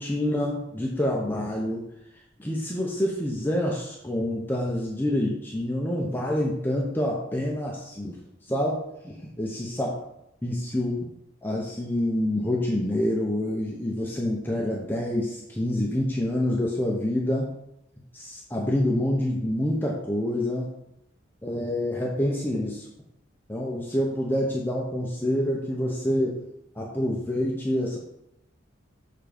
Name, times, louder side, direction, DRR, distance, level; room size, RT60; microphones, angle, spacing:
voice 1, 0.0-1.8 2.4-8.2 8.5-9.9 10.4-11.1 11.4-17.5 18.1-20.7 21.4-22.9 23.5-26.4 26.8-28.0, left 1 dB, 10° left, -2 dB, 0.8 m, -27 dB
7.2 x 3.8 x 5.2 m, 0.82 s
head